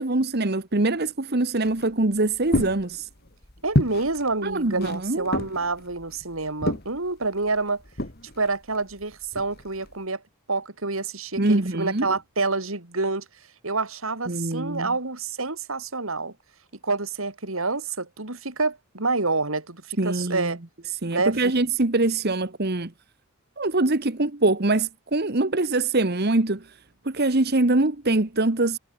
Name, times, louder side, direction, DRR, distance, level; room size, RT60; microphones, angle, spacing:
voice 1, 0.0-3.1 4.4-5.3 11.4-12.1 14.3-14.9 20.0-20.6 21.0-22.9 23.6-26.7 27.0-28.8, right 2 dB, 50° right, 1.4 m, -23 dB
sound 1, 1.6-10.0, left 1 dB, 45° left, 3.5 m, -31 dB
voice 2, 3.6-7.8 8.4-10.2 10.5-13.2 13.6-16.3 16.8-20.6 21.1-21.4, right 3 dB, 75° right, 3.3 m, -27 dB
head